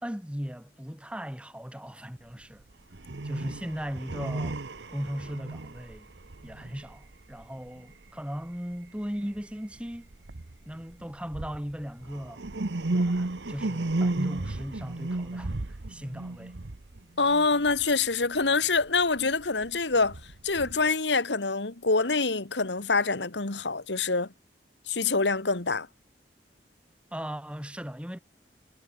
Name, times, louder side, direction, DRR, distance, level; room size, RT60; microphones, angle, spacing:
voice 1, 0.0-2.6 3.2-4.6 4.9-6.1 6.4-10.1 10.7-12.4 12.9-16.5 27.1-28.2, equal, 5° right, 2.2 m, -37 dB
sound 1, 2.6-2.7 2.9-8.1 8.5-8.9 9.3-9.4 9.7-17.9 18.4-20.9, right 2 dB, 85° right, 1.1 m, -34 dB
voice 2, 17.2-20.2 20.4-24.3 24.9-25.9, left 4 dB, 90° left, 2.1 m, -25 dB
head